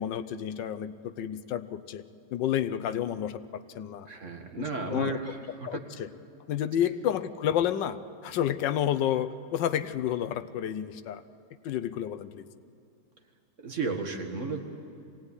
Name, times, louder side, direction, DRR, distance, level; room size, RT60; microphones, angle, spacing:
voice 1, 0.0-2.0 2.3-4.1 4.6-5.2 5.6-6.1 6.5-8.0 8.2-11.2 11.6-12.5, left 10 dB, 75° left, 11 dB, 1.4 m, -30 dB
voice 2, 4.1-5.8 13.6-14.6, right 4 dB, 40° right, 4 dB, 2.0 m, -34 dB
23.0 x 17.5 x 9.8 m, 2.4 s
omnidirectional pair, 2.0 m